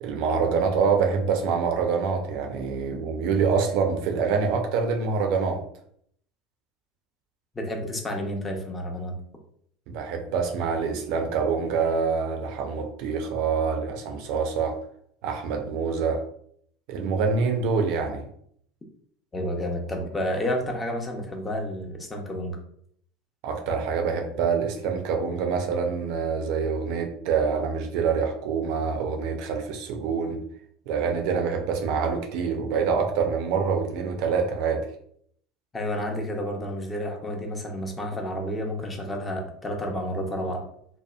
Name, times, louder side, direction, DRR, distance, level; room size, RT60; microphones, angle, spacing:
voice 1, 0.0-5.6 9.9-14.8 15.2-16.2 16.9-18.2 23.4-30.4 30.9-34.9, right 5 dB, 60° right, 3 dB, 0.5 m, -26 dB
voice 2, 7.5-9.2 19.3-22.6 35.7-40.6, equal, 20° left, 1 dB, 0.7 m, -30 dB
2.8 x 2.1 x 2.3 m, 0.66 s
hypercardioid pair, 75°, 0 cm